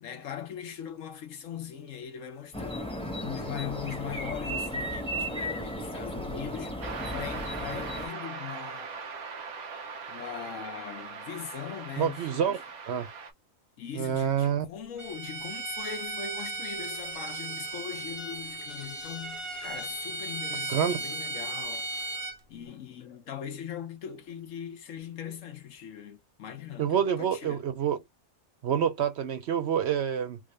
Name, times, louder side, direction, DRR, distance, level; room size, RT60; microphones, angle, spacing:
voice 1, 0.0-9.0 10.1-12.6 13.8-21.9 22.5-27.6, left 8 dB, 70° left, 1.2 m, -40 dB
sound 1, 2.5-8.1, equal, 5° left, 0.9 m, -35 dB
sound 2, 6.8-13.3, right 5 dB, 90° right, 1.3 m, -40 dB
voice 2, 12.0-12.6 12.9-13.1 13.9-14.7 20.7-21.0 26.8-28.0 28.6-30.4, right 8 dB, 60° right, 0.7 m, -27 dB
Bowed string instrument, 15.0-22.4, right 2 dB, 45° right, 1.1 m, -36 dB
3.6 x 2.5 x 3.2 m
omnidirectional pair, 1.5 m